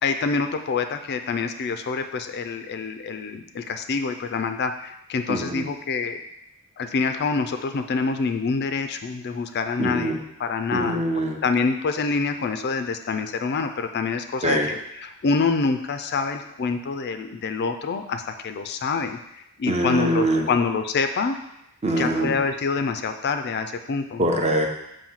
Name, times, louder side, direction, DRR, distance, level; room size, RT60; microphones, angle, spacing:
voice 1, 0.0-6.2 6.8-11.0 11.4-19.2 19.6-21.4 22.0-24.2, left 4 dB, 50° left, 8 dB, 0.4 m, -26 dB
voice 2, 5.3-5.6 9.8-10.2 10.7-11.4 14.4-14.7 19.7-20.5 21.8-22.4 24.2-24.7, right 1 dB, 30° right, 2 dB, 0.7 m, -23 dB
7.2 x 2.7 x 5.5 m, 0.82 s
head